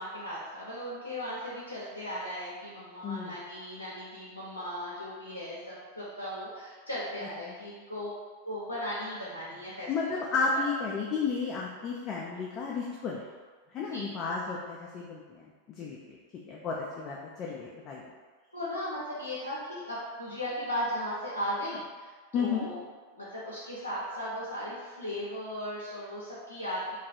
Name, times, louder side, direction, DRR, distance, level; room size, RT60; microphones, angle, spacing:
voice 1, 0.0-8.1 8.4-9.9 10.5-10.6 13.9-14.1 18.5-22.8 23.1-26.9, equal, 85° left, -8 dB, 0.5 m, -37 dB
voice 2, 3.0-3.3 9.9-13.2 13.7-15.4 15.8-16.2 16.5-18.0 22.3-22.7, left 5 dB, 30° left, -3 dB, 0.3 m, -32 dB
2.3 x 2.2 x 2.6 m, 1.5 s
figure-of-eight pair, 90°, 0 cm